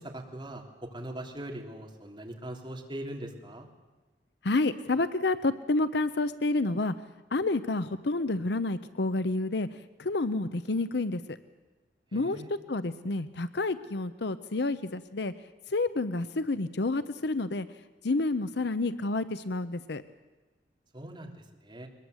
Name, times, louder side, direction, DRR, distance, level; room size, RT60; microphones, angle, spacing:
voice 1, 0.0-3.7 12.1-12.6 20.9-21.9, right 1 dB, 25° right, 1 dB, 3.3 m, -41 dB
voice 2, 4.4-6.9 7.3-9.7 10.0-11.4 12.1-12.4 12.7-15.3 15.7-17.7 18.0-20.0, left 2 dB, 65° left, 13 dB, 0.8 m, -29 dB
22.5 x 21.5 x 8.0 m, 1.2 s
head